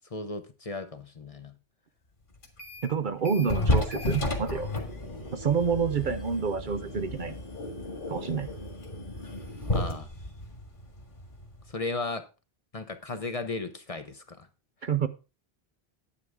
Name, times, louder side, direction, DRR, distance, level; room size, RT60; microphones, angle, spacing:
voice 1, 0.1-1.5 3.4-3.7 9.7-10.1 11.7-12.3 12.7-14.5, left 3 dB, 40° left, 9 dB, 0.9 m, -35 dB
sound 1, 2.4-2.9 3.2-11.7, left 1 dB, 55° left, 2.0 m, -33 dB
voice 2, 2.8-4.7 5.3-7.3 8.1-8.5 14.8-15.1, right 6 dB, 55° right, 11 dB, 0.8 m, -28 dB
9.7 x 9.3 x 3.5 m, 0.30 s
omnidirectional pair, 1.0 m